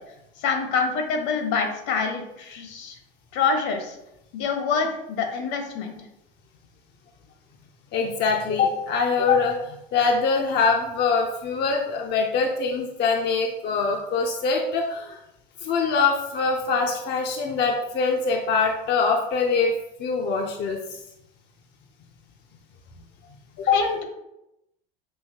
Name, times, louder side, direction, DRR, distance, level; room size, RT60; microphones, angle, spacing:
voice 1, 0.4-3.0 3.3-4.0 4.3-6.0 23.7-24.0, left 5 dB, 65° left, 4 dB, 1.1 m, -26 dB
voice 2, 7.9-15.2 15.6-19.7 20.0-20.8 23.6-23.8, left 4 dB, 35° left, 2 dB, 0.5 m, -23 dB
6.3 x 2.7 x 2.8 m, 0.86 s
hypercardioid pair, 90°, 29 cm